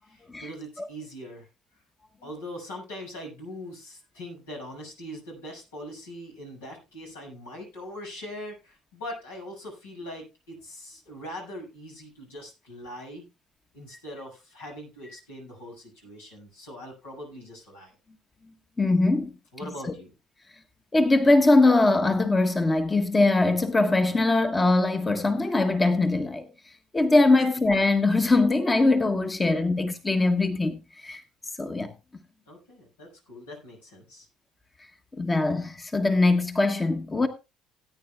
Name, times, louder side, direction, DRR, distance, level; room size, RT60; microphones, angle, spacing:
voice 1, 0.0-1.5 2.2-13.2 13.7-18.0 19.5-20.1 32.4-34.3, equal, 85° left, 6.8 m, -41 dB
voice 2, 18.8-19.3 19.6-19.7 20.9-26.5 26.9-31.2 31.6-31.9 35.2-37.3, left 2 dB, 20° left, 1.3 m, -22 dB
18.0 x 9.6 x 2.4 m
hypercardioid pair, 60°, 0 cm